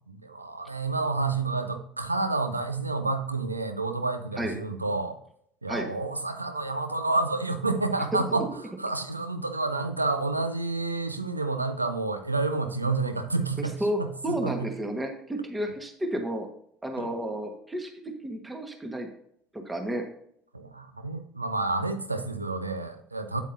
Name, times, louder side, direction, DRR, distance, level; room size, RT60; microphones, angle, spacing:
voice 1, 0.1-5.2 5.6-8.5 8.8-14.7 17.0-17.1 20.5-23.4, right 3 dB, 85° right, 9 dB, 0.6 m, -29 dB
voice 2, 13.8-16.5 16.8-17.9 18.2-19.1 19.5-20.0, right 1 dB, 15° right, 4 dB, 1.3 m, -31 dB
8.3 x 8.0 x 2.7 m, 0.70 s
figure-of-eight pair, 65°, 0 cm